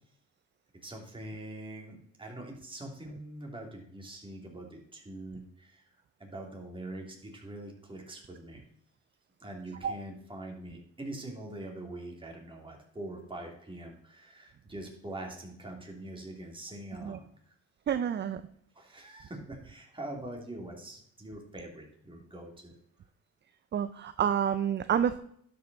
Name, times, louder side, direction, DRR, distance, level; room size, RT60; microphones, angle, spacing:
voice 1, 0.8-5.8 6.2-8.6 9.4-17.3 18.7-22.7, right 1 dB, 15° right, 0 dB, 2.6 m, -43 dB
voice 2, 17.9-18.4 23.7-25.2, right 8 dB, 35° right, 12 dB, 0.5 m, -28 dB
12.0 x 5.4 x 4.0 m, 0.68 s
cardioid pair, 90°, 30 cm